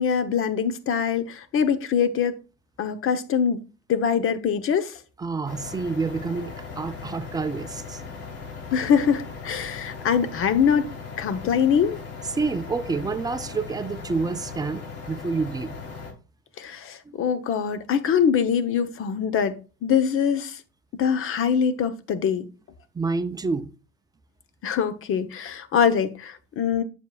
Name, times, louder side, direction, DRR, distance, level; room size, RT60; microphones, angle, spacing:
voice 1, 0.0-2.3 2.8-3.6 3.9-5.0 8.7-10.9 11.2-12.0 16.6-20.6 21.0-22.5 24.6-26.8, left 7 dB, 45° left, 1.0 m, -23 dB
voice 2, 5.2-8.0 12.3-15.8 17.1-17.2 22.9-23.7, right 4 dB, 10° right, 0.6 m, -28 dB
sound 1, 5.4-16.1, left 5 dB, 65° left, 3.8 m, -38 dB
8.0 x 7.2 x 2.4 m
supercardioid pair, 115°, 31 cm